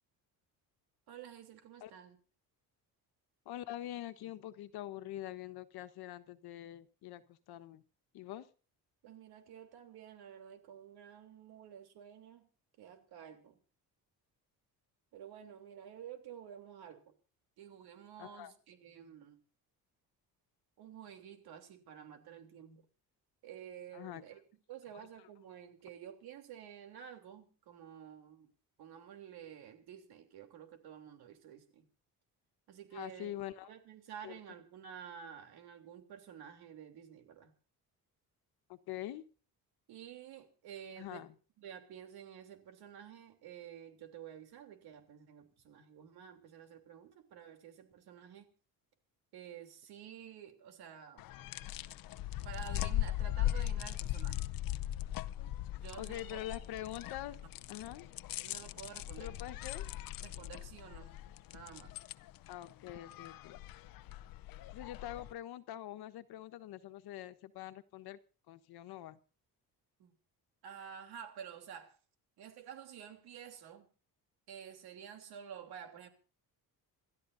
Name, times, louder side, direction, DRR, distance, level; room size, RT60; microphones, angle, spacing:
voice 1, 1.1-2.2 9.0-12.5 12.8-13.6 15.1-17.1 17.6-19.4 20.8-22.8 23.4-24.4 24.7-28.5 28.8-31.9 32.7-33.3 33.6-37.5 39.9-41.3 41.6-48.5 49.3-51.3 52.4-54.5 55.7-56.4 58.4-59.4 60.2-61.2 61.5-62.0 70.0-70.1 70.6-71.9 72.4-73.9 74.5-76.1, right 8 dB, 85° right, 3.3 m, -51 dB
voice 2, 3.4-7.8 8.1-8.5 18.2-18.5 23.9-24.2 24.9-25.1 32.9-33.7 34.2-34.4 38.7-39.2 41.0-41.3 56.0-57.4 57.7-58.1 59.2-59.9 62.5-63.6 64.7-68.2 68.5-69.2, left 13 dB, 85° left, 1.3 m, -44 dB
sound 1, 51.2-65.3, left 13 dB, 65° left, 0.7 m, -39 dB
27.5 x 13.0 x 2.7 m
cardioid pair, 175°, 37 cm